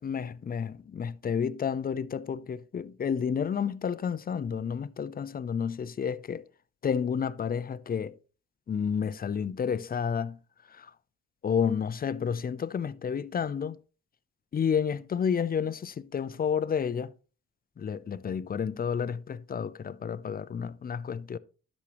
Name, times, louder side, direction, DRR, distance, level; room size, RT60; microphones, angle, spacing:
voice 1, 0.0-6.4 6.8-8.2 8.7-10.4 10.7-10.9 11.4-13.8 14.5-17.1 17.8-21.4, left 7 dB, 30° left, 0.5 m, -30 dB
12.0 x 6.3 x 3.0 m
cardioid pair, 90°, 30 cm